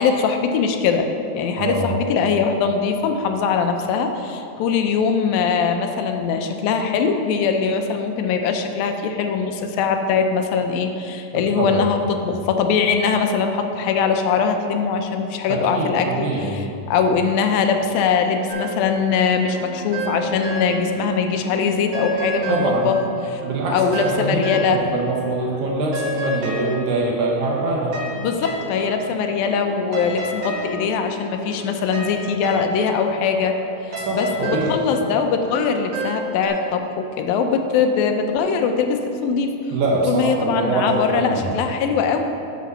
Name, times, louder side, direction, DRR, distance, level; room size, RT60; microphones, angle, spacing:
voice 1, 0.0-16.6 16.9-23.0 23.3-23.4 23.7-24.8 28.2-33.6 34.1-39.5 40.1-42.2, left 5 dB, 85° left, 5 dB, 2.4 m, -21 dB
voice 2, 1.6-1.9 11.3-11.8 15.5-16.5 22.5-22.9 23.4-28.0 34.1-34.8 39.7-41.6, right 2 dB, 70° right, -2 dB, 2.0 m, -24 dB
sound 1, 18.5-21.1 21.4-25.2 25.4-36.5, right 2 dB, 50° right, 1.5 m, -31 dB
9.4 x 5.0 x 6.5 m, 2.7 s
omnidirectional pair, 4.1 m